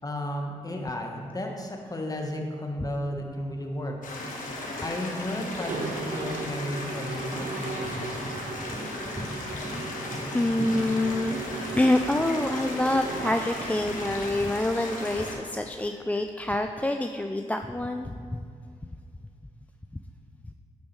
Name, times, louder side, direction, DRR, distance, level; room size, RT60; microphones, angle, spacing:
voice 1, 0.0-4.0 4.8-8.2, left 1 dB, 25° left, 2 dB, 1.3 m, -33 dB
sound 1, 4.0-15.3, left 2 dB, 75° left, 1.4 m, -36 dB
sound 2, 5.4-11.7, right 1 dB, 25° right, 1.9 m, -39 dB
Mechanisms, 5.5-14.5, right 4 dB, 70° right, 0.7 m, -38 dB
voice 2, 10.3-11.4 11.8-18.4, left 1 dB, 10° left, 5 dB, 0.4 m, -26 dB
9.6 x 7.1 x 3.2 m, 2.3 s
cardioid pair, 55°, 14 cm